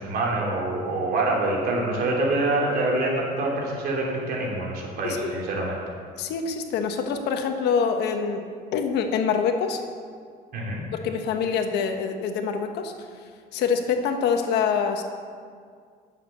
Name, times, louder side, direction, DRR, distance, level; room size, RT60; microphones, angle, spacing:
voice 1, 0.0-5.8 10.5-10.8, right 2 dB, 65° right, -2 dB, 3.1 m, -25 dB
voice 2, 6.2-8.4 8.7-9.8 10.9-12.9 13.5-15.0, left 6 dB, 80° left, 5 dB, 1.2 m, -25 dB
9.5 x 7.5 x 7.2 m, 2.1 s
cardioid pair, 110°, 17 cm